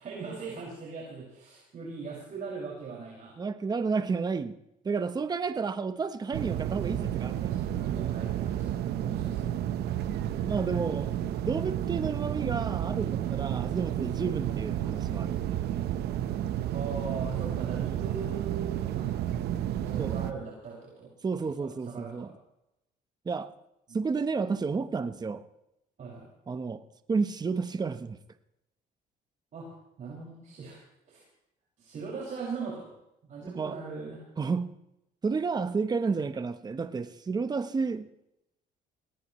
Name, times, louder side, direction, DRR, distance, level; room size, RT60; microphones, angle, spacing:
voice 1, 0.0-3.4 7.2-9.5 14.3-14.5 16.7-19.1 19.9-22.3 23.9-24.0 26.0-26.3 29.5-30.8 31.1-31.2 31.8-32.9 33.3-34.3, right 4 dB, 50° right, -4 dB, 6.0 m, -40 dB
voice 2, 3.4-4.5 4.8-7.5 9.0-9.5 10.4-11.1 11.5-15.3 20.0-20.2 21.2-22.3 23.2-23.5 23.9-25.4 26.5-26.8 27.1-28.2 33.5-33.8 34.4-34.7 35.2-38.1, right 4 dB, 25° right, 10 dB, 1.0 m, -31 dB
sound 1, 6.3-20.3, right 11 dB, 75° right, 1.1 m, -31 dB
19.0 x 19.0 x 3.2 m, 0.86 s
cardioid pair, 110°, 17 cm